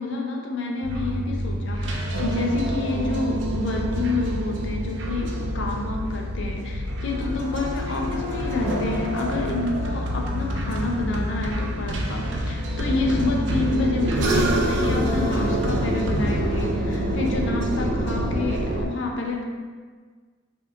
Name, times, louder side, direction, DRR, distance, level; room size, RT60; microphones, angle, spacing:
voice 1, 0.0-19.4, left 2 dB, 65° left, 1 dB, 0.4 m, -28 dB
sound 1, 0.8-18.9, equal, 65° right, 0.4 m, -26 dB
2.8 x 2.2 x 3.7 m, 1.5 s
head